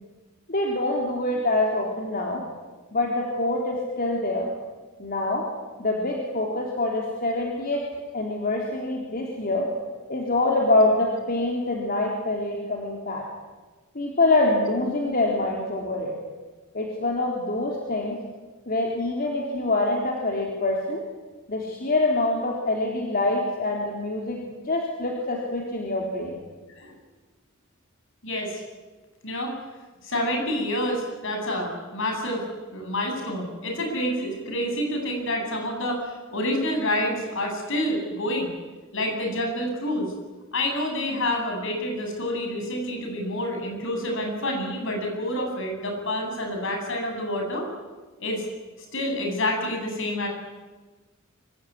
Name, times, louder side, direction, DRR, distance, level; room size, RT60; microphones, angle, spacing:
voice 1, 0.5-2.4 2.9-4.5 5.0-5.5 5.8-7.9 8.1-9.7 10.1-13.3 13.9-16.1 16.7-18.2 18.7-21.0 21.5-26.4, left 2 dB, 45° left, 0 dB, 3.8 m, -25 dB
voice 2, 28.2-28.6 29.2-29.5 30.0-38.6 38.9-40.1 40.5-47.7 48.2-48.5 48.9-50.3, left 1 dB, 65° left, 2 dB, 7.9 m, -28 dB
25.0 x 24.5 x 9.8 m, 1.3 s
head